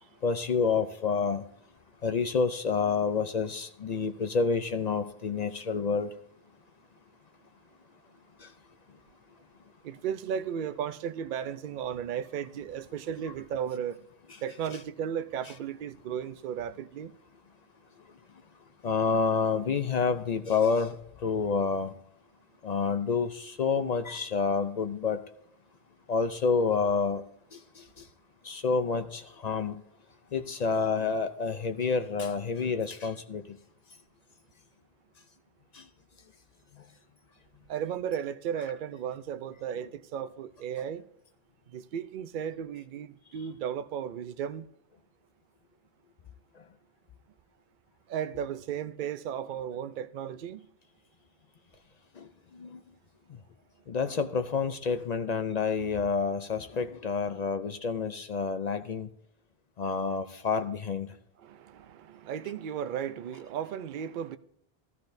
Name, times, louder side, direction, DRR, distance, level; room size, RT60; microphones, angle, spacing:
voice 1, 0.2-1.4 2.0-6.1 8.4-8.5 18.8-21.9 22.6-25.2 26.1-27.2 27.5-27.8 28.4-29.8 30.3-33.6 35.7-35.8 52.2-52.8 53.9-59.1 59.8-61.1, left 5 dB, 50° left, 0.5 m, -29 dB
voice 2, 9.8-14.0 14.4-17.1 37.7-41.0 41.7-44.7 48.1-50.7 61.4-64.4, right 8 dB, 60° right, 0.6 m, -35 dB
13.5 x 13.0 x 2.6 m
omnidirectional pair, 1.1 m